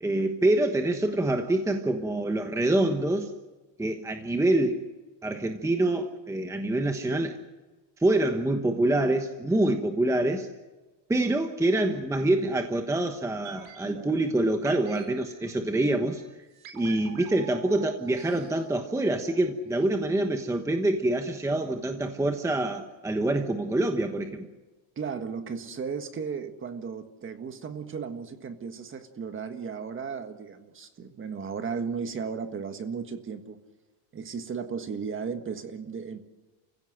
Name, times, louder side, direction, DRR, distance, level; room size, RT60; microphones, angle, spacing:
voice 1, 0.0-3.3 3.8-4.8 5.2-7.4 8.0-10.5 11.1-16.2 16.7-24.5, right 1 dB, 5° right, 6 dB, 1.2 m, -26 dB
sound 1, 13.4-19.5 19.8-19.9, right 8 dB, 50° right, 4.6 m, -47 dB
voice 2, 25.0-33.6 34.1-36.2, right 6 dB, 25° right, 8 dB, 1.6 m, -35 dB
29.5 x 16.0 x 7.8 m, 1.2 s
cardioid pair, 145°, 47 cm